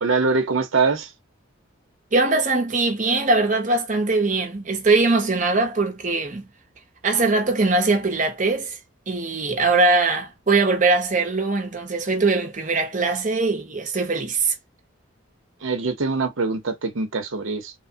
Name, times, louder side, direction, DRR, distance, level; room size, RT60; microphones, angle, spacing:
voice 1, 0.0-1.1 15.6-17.7, right 4 dB, 70° right, 0.7 m, -23 dB
voice 2, 2.1-6.5 7.0-8.8 9.1-14.5, right 3 dB, 35° right, 0.7 m, -21 dB
3.1 x 2.1 x 2.7 m
head